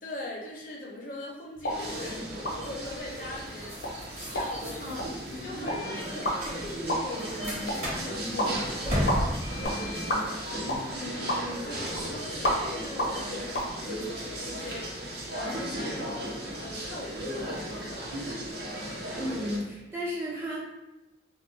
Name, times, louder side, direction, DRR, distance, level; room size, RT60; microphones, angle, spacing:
voice 1, 0.0-10.4 10.9-16.2 16.6-18.4, left 1 dB, 50° left, -2 dB, 0.6 m, -41 dB
sound 1, 1.6-13.7, equal, 90° left, 0.7 m, -34 dB
sound 2, 1.6-9.7, equal, 35° right, 0.9 m, -36 dB
sound 3, 1.7-19.6, right 1 dB, 65° right, 0.8 m, -36 dB
voice 2, 19.2-20.6, equal, 15° right, -5 dB, 0.6 m, -33 dB
2.3 x 2.2 x 3.8 m, 0.99 s
head